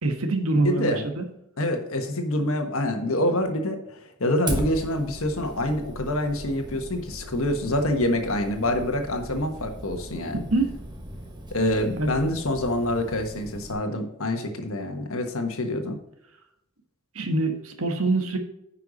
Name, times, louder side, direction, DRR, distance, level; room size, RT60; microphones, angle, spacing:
voice 1, 0.0-1.2 10.5-10.8 12.0-12.1 17.1-18.4, right 2 dB, 70° right, 5 dB, 1.3 m, -24 dB
voice 2, 0.5-1.0 1.6-3.8 4.2-10.4 11.5-16.0, left 1 dB, 65° left, 5 dB, 1.4 m, -26 dB
Fire, 4.5-13.7, right 1 dB, 20° right, 1.2 m, -38 dB
9.9 x 5.8 x 4.1 m, 0.83 s
head